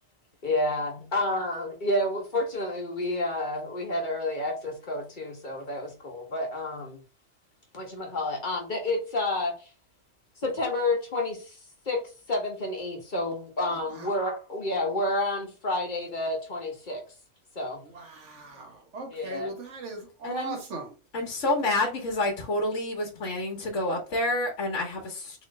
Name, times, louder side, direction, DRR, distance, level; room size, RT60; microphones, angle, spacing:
voice 1, 0.4-7.0 7.7-9.7 10.4-11.6 11.8-17.0 17.5-17.8 19.1-19.5, left 2 dB, 40° left, 1.2 m, -30 dB
voice 2, 13.7-14.1 17.9-20.9, right 3 dB, 70° right, 1.4 m, -39 dB
voice 3, 20.2-20.6 21.1-25.4, left 2 dB, 75° left, 1.3 m, -28 dB
3.7 x 3.1 x 3.2 m
omnidirectional pair, 1.3 m